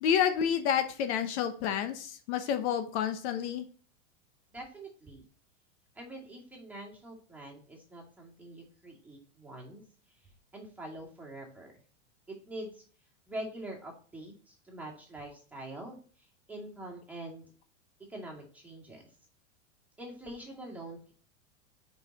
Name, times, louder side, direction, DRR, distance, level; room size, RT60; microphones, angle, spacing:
voice 1, 0.0-3.7, left 8 dB, 65° left, 8 dB, 1.0 m, -29 dB
voice 2, 4.5-5.2 6.0-9.8 10.5-11.7 12.3-12.8 13.3-16.0 16.5-17.4 18.1-19.0 20.0-21.1, right 1 dB, 5° right, -2 dB, 2.1 m, -44 dB
5.5 x 5.0 x 4.1 m, 0.42 s
supercardioid pair, 135°, 37 cm